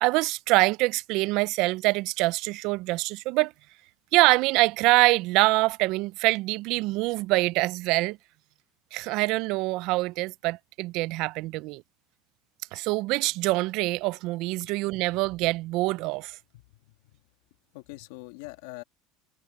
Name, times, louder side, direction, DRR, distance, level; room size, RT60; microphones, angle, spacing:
voice 1, 0.0-3.5 4.1-8.2 8.9-11.8 12.7-16.4, right 21 dB, 65° right, 0.5 m, -25 dB
voice 2, 16.5-16.9 17.7-18.8, left 23 dB, 80° left, 2.1 m, -43 dB
supercardioid pair, 115°, 0 cm